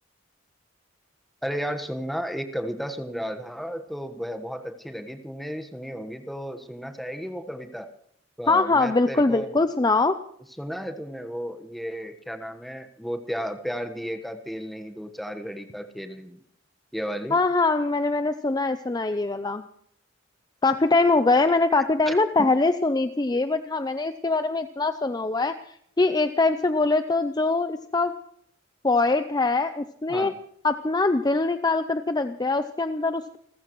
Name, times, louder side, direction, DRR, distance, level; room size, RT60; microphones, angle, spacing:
voice 1, 1.4-7.9 8.4-9.5 10.6-16.4 16.9-17.4 22.1-22.5 30.1-30.4, equal, ahead, 7 dB, 1.3 m, -33 dB
voice 2, 8.5-10.2 17.3-19.6 20.6-28.1 28.8-30.3 30.6-33.4, left 3 dB, 20° left, 10 dB, 0.6 m, -23 dB
29.5 x 14.5 x 3.1 m, 0.66 s
head